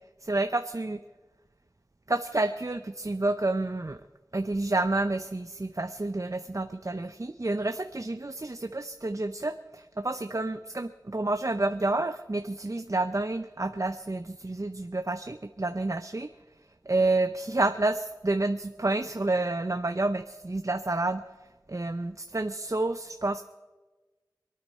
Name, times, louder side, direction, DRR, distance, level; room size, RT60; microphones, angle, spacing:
voice 1, 0.2-1.0 2.1-4.0 4.3-16.3 16.9-21.2 21.7-23.4, right 2 dB, 45° right, 9 dB, 0.6 m, -29 dB
25.5 x 9.4 x 4.3 m, 1.2 s
wide cardioid pair, 45°, 8 cm